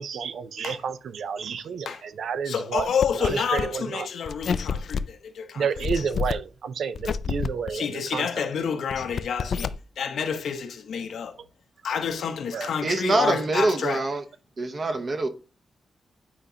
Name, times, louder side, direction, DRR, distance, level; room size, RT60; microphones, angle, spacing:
voice 1, 0.0-2.9 3.2-4.1 5.6-8.5 12.5-12.7, right 6 dB, 70° right, 0.5 m, -30 dB
voice 2, 2.4-5.9 7.7-11.4 11.8-14.1, left 7 dB, 85° left, 0.9 m, -29 dB
sound 1, 2.8-3.6 4.3-5.0 5.8-6.4 7.0-7.7 8.7-9.7, left 6 dB, 60° left, 0.3 m, -29 dB
voice 3, 12.8-14.2 14.6-15.3, right 2 dB, 35° right, 0.8 m, -24 dB
8.8 x 5.0 x 2.8 m
wide cardioid pair, 170°, 0 cm